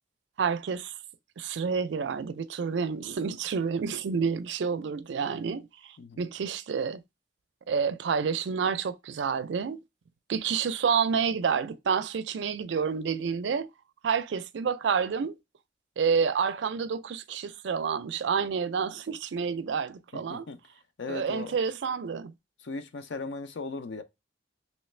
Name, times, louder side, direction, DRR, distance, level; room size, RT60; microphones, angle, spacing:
voice 1, 0.4-0.9 1.4-7.0 7.7-9.8 10.3-13.7 14.0-15.4 16.0-20.5 21.1-22.3, right 6 dB, 85° right, 0.4 m, -29 dB
voice 2, 20.1-20.6 21.0-21.6 22.6-24.0, left 3 dB, 80° left, 0.5 m, -37 dB
3.1 x 3.1 x 3.1 m
head